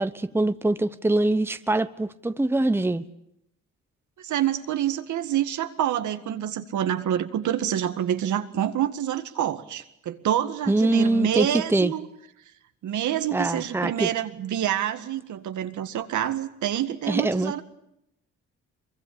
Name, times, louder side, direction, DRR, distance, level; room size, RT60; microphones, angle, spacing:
voice 1, 0.0-3.0 10.7-11.9 13.3-14.1 17.1-17.6, right 2 dB, 10° right, 11 dB, 1.0 m, -23 dB
voice 2, 4.2-12.0 12.8-17.6, right 11 dB, 75° right, 8 dB, 1.9 m, -27 dB
23.5 x 23.5 x 8.6 m, 0.81 s
cardioid pair, 90°, 30 cm